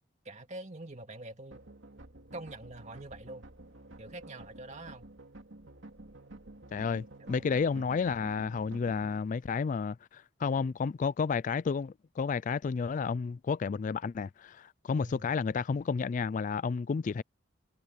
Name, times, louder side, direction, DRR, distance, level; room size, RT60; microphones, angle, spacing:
voice 1, 0.2-1.6 2.3-3.5 4.0-5.1 7.2-7.4 7.8-7.9 15.0-15.3, right 2 dB, 35° right, 2.3 m, -45 dB
sound 1, 1.5-9.2, right 1 dB, 65° right, 2.8 m, -50 dB
voice 2, 6.7-17.2, left 5 dB, 40° left, 0.3 m, -31 dB
head